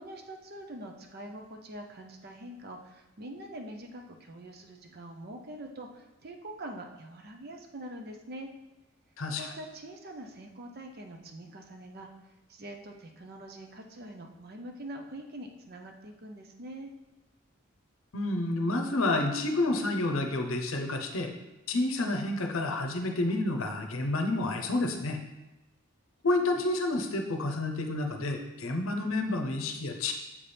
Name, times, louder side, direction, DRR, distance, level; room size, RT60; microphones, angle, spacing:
voice 1, 0.0-8.5 9.4-12.1 12.5-16.9, right 1 dB, 45° right, 3 dB, 0.6 m, -44 dB
voice 2, 9.2-9.5 18.1-21.3 21.7-25.2 26.2-30.1, left 2 dB, 70° left, 4 dB, 0.7 m, -29 dB
7.4 x 4.2 x 3.4 m, 1.0 s
head